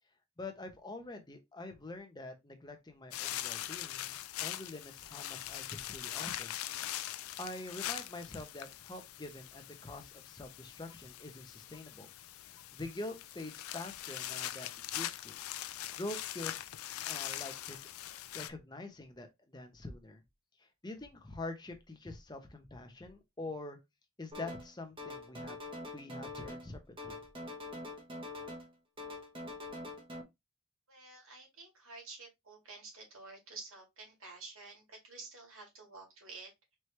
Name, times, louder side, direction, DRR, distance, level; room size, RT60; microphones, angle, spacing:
voice 1, 0.4-6.5 7.1-12.1 12.3-14.7 14.9-15.4 15.9-16.6 17.0-17.8 18.3-20.2 20.6-23.8 24.2-25.6 25.9-27.2, left 2 dB, 20° left, 0.8 m, -45 dB
sound 1, 3.1-18.5, left 13 dB, 90° left, 0.4 m, -42 dB
sound 2, 24.3-24.7 25.0-26.7 27.0-28.7 29.0-30.2, left 2 dB, 25° right, 0.9 m, -44 dB
voice 2, 30.9-36.8, right 3 dB, 75° right, 2.0 m, -50 dB
4.5 x 3.1 x 3.2 m
head